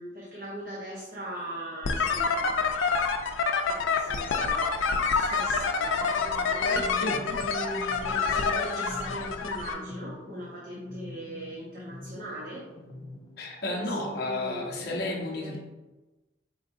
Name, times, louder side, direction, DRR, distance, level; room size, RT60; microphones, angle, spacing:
voice 1, 0.0-3.0 3.7-7.0 7.3-12.7 13.7-15.6, right 1 dB, 45° right, -4 dB, 0.7 m, -40 dB
sound 1, 1.8-9.7, left 5 dB, 85° left, 0.4 m, -27 dB
sound 2, 6.0-13.4, left 1 dB, 20° left, 0.4 m, -43 dB
voice 2, 13.4-15.6, left 2 dB, 55° left, -1 dB, 0.7 m, -32 dB
4.6 x 3.8 x 2.5 m, 1.1 s
head